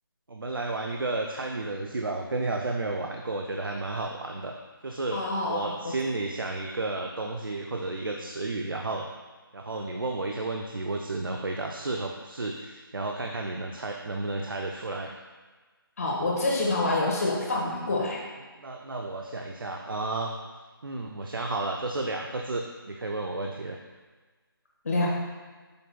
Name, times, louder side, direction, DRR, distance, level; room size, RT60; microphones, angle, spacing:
voice 1, 0.3-4.5 4.8-5.2 5.5-9.1 9.5-15.1 18.6-20.3 20.8-23.8, right 2 dB, 65° right, 1 dB, 0.6 m, -32 dB
voice 2, 5.1-5.9 16.0-18.2 24.8-25.1, left 2 dB, 40° left, -2 dB, 1.5 m, -27 dB
8.0 x 6.7 x 2.2 m, 1.4 s
figure-of-eight pair, 155°, 12 cm